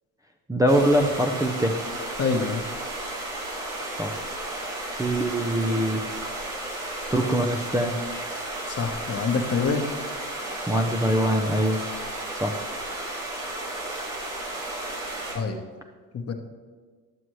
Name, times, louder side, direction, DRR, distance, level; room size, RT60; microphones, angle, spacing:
voice 1, 0.5-1.8 4.0-4.2 5.0-6.0 7.1-7.9 10.7-11.8 12.4-12.6, right 1 dB, 10° right, 0 dB, 0.7 m, -23 dB
sound 1, 0.7-15.3, right 1 dB, 90° right, 2.2 m, -33 dB
voice 2, 2.2-2.6 8.7-9.9 15.3-15.6 16.1-16.3, left 5 dB, 35° left, 5 dB, 1.2 m, -26 dB
11.0 x 7.9 x 3.2 m, 1.5 s
hypercardioid pair, 60°, 41 cm